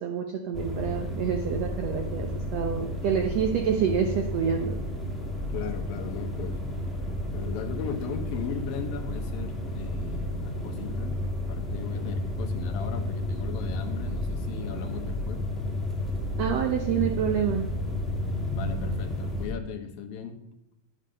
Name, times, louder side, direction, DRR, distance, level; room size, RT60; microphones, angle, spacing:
voice 1, 0.0-4.8 16.4-17.6, right 7 dB, 80° right, 4 dB, 1.5 m, -27 dB
sound 1, 0.5-19.5, left 1 dB, ahead, 1.2 m, -32 dB
voice 2, 5.5-6.7 7.3-11.2 11.5-15.5 18.6-20.4, left 7 dB, 85° left, 5 dB, 2.9 m, -37 dB
10.5 x 7.4 x 6.5 m, 0.86 s
omnidirectional pair, 4.0 m